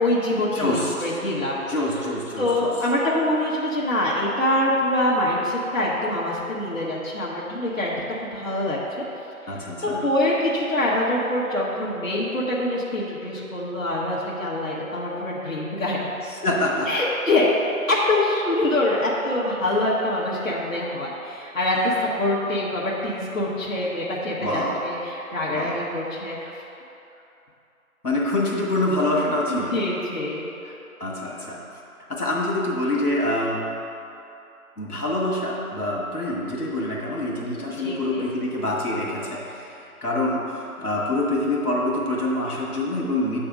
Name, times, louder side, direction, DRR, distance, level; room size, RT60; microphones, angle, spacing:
voice 1, 0.0-1.6 2.4-7.9 8.2-9.0 9.6-16.1 16.9-17.5 17.9-26.5 29.5-30.4 37.6-38.3, left 1 dB, 60° left, -6 dB, 1.2 m, -25 dB
voice 2, 0.5-1.1 1.7-2.7 9.5-10.0 16.2-16.9 24.4-24.8 25.5-25.9 28.0-29.8 30.6-31.8 32.1-33.7 34.8-43.4, left 1 dB, 90° left, -3 dB, 1.5 m, -26 dB
8.0 x 3.4 x 5.1 m, 2.8 s
figure-of-eight pair, 165°, 44 cm